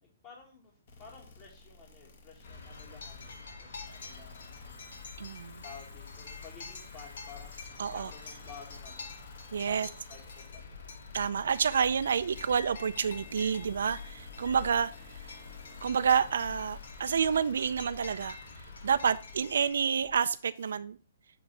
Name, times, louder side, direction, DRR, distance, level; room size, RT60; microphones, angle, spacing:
voice 1, 0.0-5.1 5.6-9.1 9.6-10.8, left 5 dB, 35° left, 1.7 m, -53 dB
sound 1, 0.9-20.7, left 4 dB, 55° left, 1.8 m, -56 dB
sound 2, 2.4-20.2, left 4 dB, 75° left, 2.2 m, -46 dB
voice 2, 5.2-5.6 7.8-8.1 9.5-9.9 11.1-14.9 15.2-15.3 15.8-21.0, right 7 dB, 75° right, 0.4 m, -29 dB
9.8 x 3.9 x 3.2 m
hypercardioid pair, 155°, 0 cm